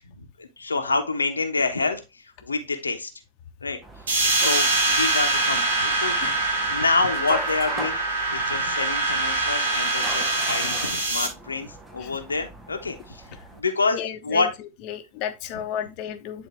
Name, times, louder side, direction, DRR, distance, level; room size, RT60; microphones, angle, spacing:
voice 1, 0.0-3.1 3.6-3.8 4.3-6.2 6.7-8.0 8.3-14.5, left 3 dB, 75° left, 4 dB, 1.1 m, -27 dB
sound 1, 3.8-13.6, right 1 dB, 10° right, 1.3 m, -40 dB
sound 2, 4.1-11.3, right 2 dB, 65° right, 2.4 m, -24 dB
voice 2, 13.9-14.4 14.9-16.5, left 9 dB, 40° left, 7 dB, 1.1 m, -33 dB
10.0 x 4.0 x 3.3 m, 0.25 s
figure-of-eight pair, 90°, 0 cm